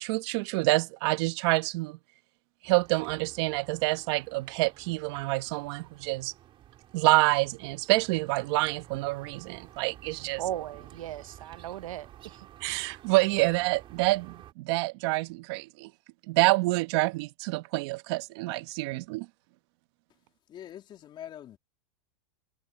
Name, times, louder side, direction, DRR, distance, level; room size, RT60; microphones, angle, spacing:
voice 1, 0.0-2.0 2.6-6.3 6.9-10.4 12.6-15.9 16.3-19.2, right 22 dB, 55° right, 1.5 m, -27 dB
sound 1, 2.6-14.5, right 12 dB, 30° right, 4.5 m, -52 dB
voice 2, 10.4-12.5, right 12 dB, 80° right, 0.9 m, -37 dB
voice 3, 20.5-21.6, left 10 dB, 25° left, 3.3 m, -44 dB
supercardioid pair, 140°, 17 cm